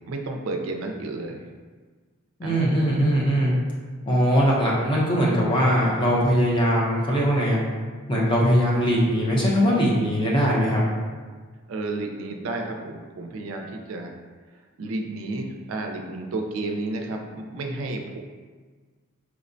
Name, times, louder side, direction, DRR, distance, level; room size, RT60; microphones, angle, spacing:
voice 1, 0.1-1.4 2.4-2.9 11.7-14.1 14.8-18.2, right 2 dB, 80° right, 3 dB, 0.4 m, -31 dB
voice 2, 2.4-3.5 4.1-7.6 8.1-10.8, equal, 25° left, -5 dB, 0.6 m, -21 dB
4.5 x 2.1 x 2.6 m, 1.5 s
head